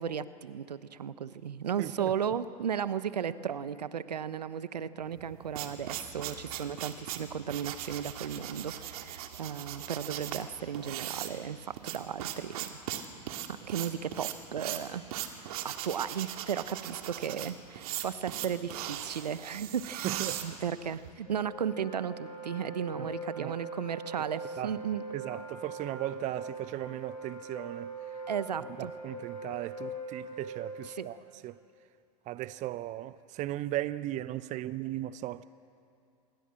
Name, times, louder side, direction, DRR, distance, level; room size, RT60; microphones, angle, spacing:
voice 1, 0.0-12.8 13.5-25.0 28.3-28.9 30.9-31.1, right 8 dB, 80° right, 1.0 m, -35 dB
voice 2, 1.8-2.1 20.0-20.4 23.0-23.1 23.4-23.6 24.6-24.8 25.1-28.0 28.8-31.2 31.4-31.6 32.3-35.5, right 14 dB, 35° right, 0.7 m, -37 dB
sound 1, 5.2-21.1, right 11 dB, 65° right, 2.2 m, -39 dB
Wind instrument woodwind instrument, 21.3-31.2, right 2 dB, 75° left, 7.5 m, -42 dB
26.0 x 22.0 x 7.6 m
hypercardioid pair, 95°, 20 cm